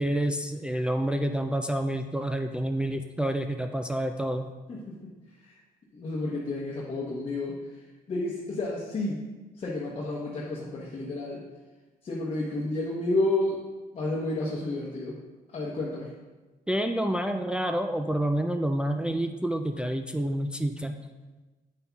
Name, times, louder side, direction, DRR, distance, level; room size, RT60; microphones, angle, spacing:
voice 1, 0.0-4.5 16.7-21.0, right 1 dB, 5° right, 4 dB, 0.3 m, -28 dB
voice 2, 4.7-5.1 5.4-5.6 5.9-9.2 9.6-11.4 12.0-13.6 13.9-15.2 15.5-16.1, left 2 dB, 40° left, -4 dB, 1.0 m, -31 dB
8.5 x 5.4 x 2.3 m, 1.2 s
cardioid pair, 95°, 16 cm